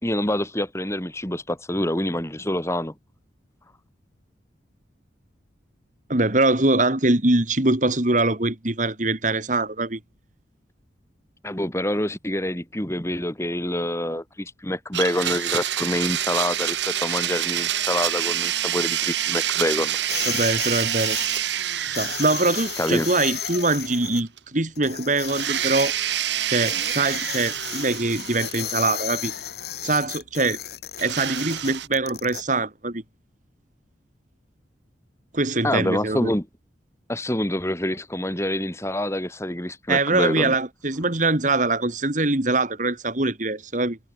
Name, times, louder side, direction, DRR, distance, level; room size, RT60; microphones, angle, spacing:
voice 1, 0.0-2.9 11.4-20.0 22.8-23.1 35.6-36.5 37.1-40.6, left 1 dB, 15° left, 2.7 m, -26 dB
voice 2, 6.1-10.0 20.3-21.2 21.8-25.9 26.5-29.3 29.8-30.6 31.0-33.0 35.3-36.3 39.9-44.0, right 2 dB, 40° right, 2.3 m, -23 dB
Domestic sounds home sounds, 14.9-24.1 24.4-24.5 25.2-29.2 31.0-31.9, right 11 dB, 70° right, 1.4 m, -27 dB
sound 1, 20.1-21.4 21.9-24.2 24.8-25.9 26.5-32.4, left 9 dB, 55° left, 2.4 m, -34 dB
head